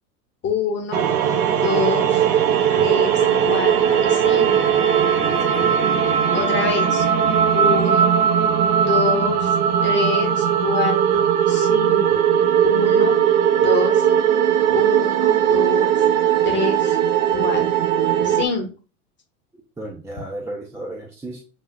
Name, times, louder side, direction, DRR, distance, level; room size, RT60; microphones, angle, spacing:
voice 1, 0.4-1.1 1.6-2.2 2.7-4.7 6.3-7.1 7.5-8.2 8.9-9.5 9.8-12.2 12.6-13.2 13.6-14.0 14.7-15.9 16.4-17.0 17.3-17.6 18.2-18.7, left 5 dB, 25° left, 2 dB, 1.3 m, -26 dB
sound 1, 0.9-18.5, right 8 dB, 65° right, 0.8 m, -18 dB
voice 2, 5.2-5.7 19.8-21.4, right 1 dB, 5° right, -1 dB, 0.6 m, -34 dB
7.4 x 2.5 x 2.2 m, 0.34 s
figure-of-eight pair, 90°, 47 cm